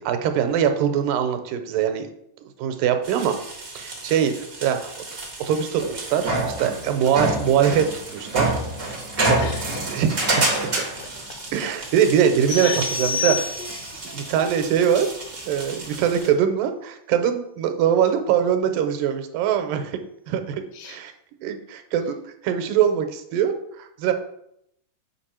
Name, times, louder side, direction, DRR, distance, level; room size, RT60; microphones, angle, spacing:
voice 1, 0.0-2.1 2.6-3.3 3.7-4.9 5.4-7.9 8.1-8.5 9.3-9.5 9.9-10.5 11.5-13.4 14.0-15.1 15.5-20.0 20.3-21.1 21.4-22.2 22.4-24.1, right 8 dB, 90° right, 7 dB, 2.4 m, -22 dB
sound 1, 3.0-16.3, right 2 dB, 50° right, 0.7 m, -29 dB
voice 2, 9.3-10.0 11.0-11.1 11.6-11.8 12.5-14.6 20.7-21.0, left 6 dB, 80° left, 6 dB, 1.9 m, -37 dB
sound 2, 12.5-14.0, left 4 dB, 35° left, 3.7 m, -28 dB
7.1 x 5.3 x 4.3 m, 0.76 s
omnidirectional pair, 3.8 m